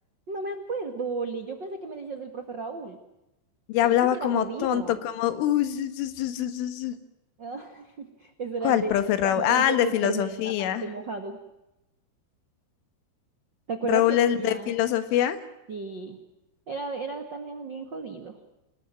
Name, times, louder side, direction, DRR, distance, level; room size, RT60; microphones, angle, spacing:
voice 1, 0.3-3.0 3.8-5.0 7.4-9.0 9.2-11.4 13.7-14.7 15.7-16.2 16.7-18.4, right 4 dB, 75° right, 6 dB, 1.0 m, -34 dB
voice 2, 3.7-7.0 8.6-10.9 13.8-15.4, left 11 dB, 90° left, 11 dB, 4.1 m, -24 dB
27.0 x 18.5 x 9.1 m, 0.93 s
omnidirectional pair, 5.4 m